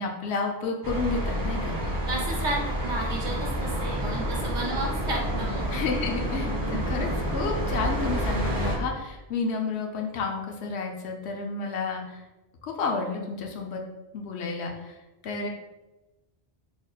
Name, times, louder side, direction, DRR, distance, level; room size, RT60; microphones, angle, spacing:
voice 1, 0.0-1.8 5.7-12.2 12.6-13.8 14.1-15.0 15.2-15.5, left 4 dB, 80° left, 1 dB, 0.8 m, -31 dB
sound 1, 0.8-8.8, equal, 30° right, 0.4 m, -29 dB
voice 2, 2.1-5.7, right 2 dB, 55° right, -1 dB, 0.8 m, -32 dB
3.4 x 2.1 x 3.8 m, 1.1 s
omnidirectional pair, 1.1 m